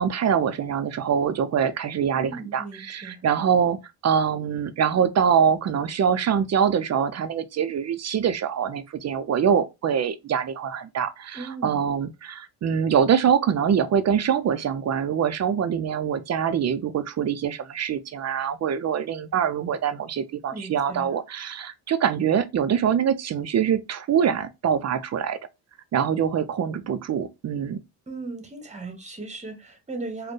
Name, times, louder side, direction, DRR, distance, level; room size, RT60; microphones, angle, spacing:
voice 1, 0.0-25.4 25.9-27.8, right 8 dB, 45° right, 0.5 m, -24 dB
voice 2, 2.1-3.2 11.3-11.8 20.5-21.1 28.1-30.3, right 3 dB, 20° right, 1.1 m, -37 dB
4.2 x 2.2 x 3.1 m
cardioid pair, 100°, 39 cm